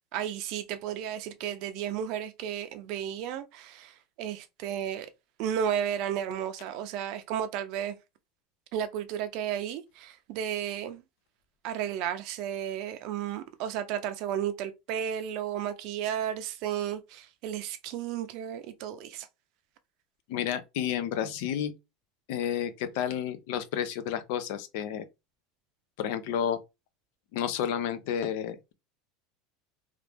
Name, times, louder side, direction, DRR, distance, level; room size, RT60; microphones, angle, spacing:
voice 1, 0.1-5.1 5.4-8.0 8.7-11.0 11.6-19.3, right 9 dB, 45° right, 0.5 m, -33 dB
voice 2, 20.3-21.7 22.3-25.1 26.0-26.6 27.3-28.7, left 9 dB, 60° left, 0.5 m, -31 dB
3.0 x 2.5 x 3.3 m
supercardioid pair, 170°, 0 cm